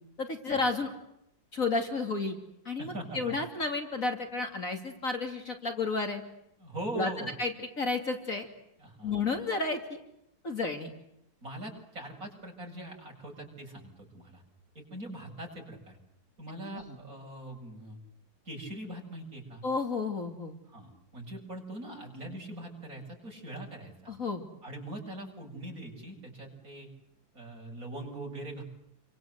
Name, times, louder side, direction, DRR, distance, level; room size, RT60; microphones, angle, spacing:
voice 1, 0.2-0.9 1.5-2.4 2.6-6.2 6.9-7.1 7.4-8.5 9.0-10.0 10.4-10.9 16.9-17.0 19.6-20.6 24.1-24.4, left 3 dB, 45° left, 5 dB, 3.1 m, -31 dB
voice 2, 2.8-3.4 6.6-7.3 8.8-9.2 11.4-14.4 14.7-16.0 16.4-18.0 18.4-19.6 20.7-24.1 24.6-26.9 27.3-28.6, right 1 dB, 45° right, 0 dB, 8.1 m, -42 dB
30.0 x 24.5 x 8.1 m, 0.81 s
omnidirectional pair, 2.0 m